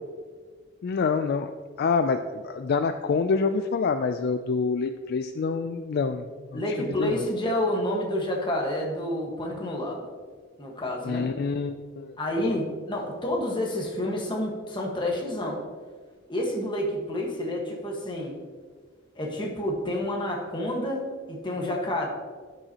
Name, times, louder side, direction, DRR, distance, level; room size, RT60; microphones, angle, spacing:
voice 1, 0.8-1.5 1.8-6.2 6.5-6.6 7.0-7.2 11.0-12.5, left 5 dB, 55° left, 8 dB, 0.3 m, -27 dB
voice 2, 6.5-10.1 10.6-11.3 12.2-15.6 16.3-18.3 19.2-22.1, left 1 dB, 25° left, -1 dB, 1.4 m, -29 dB
12.5 x 5.5 x 2.9 m, 1.5 s
head